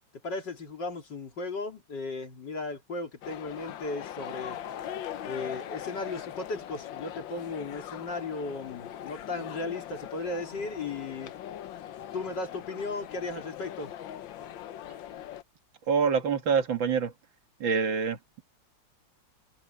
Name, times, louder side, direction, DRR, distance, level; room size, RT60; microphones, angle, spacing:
voice 1, 0.2-4.6 5.2-11.3 12.1-13.9, left 3 dB, 65° left, 3.8 m, -36 dB
sound 1, 3.2-15.4, left 10 dB, 90° left, 1.6 m, -41 dB
voice 2, 15.9-17.1 17.6-18.4, right 6 dB, 85° right, 2.5 m, -26 dB
omnidirectional pair, 2.0 m